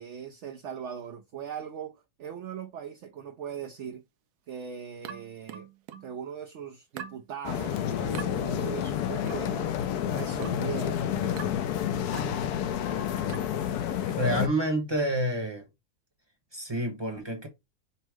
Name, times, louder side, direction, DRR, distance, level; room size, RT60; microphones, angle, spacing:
voice 1, 0.0-4.0 4.5-5.7 6.0-9.8 10.1-11.5, right 8 dB, 65° right, 0.8 m, -40 dB
sound 1, 5.1-6.2 7.0-7.3 8.2-8.4 9.3-9.5 10.4-10.7 11.4-11.7 12.1-12.4 13.3-13.6, right 8 dB, 85° right, 1.1 m, -42 dB
sound 2, 7.4-14.5, left 10 dB, 75° left, 1.1 m, -30 dB
voice 2, 14.0-15.6 16.5-17.5, right 1 dB, 20° right, 0.9 m, -28 dB
5.5 x 2.1 x 4.7 m
omnidirectional pair, 1.7 m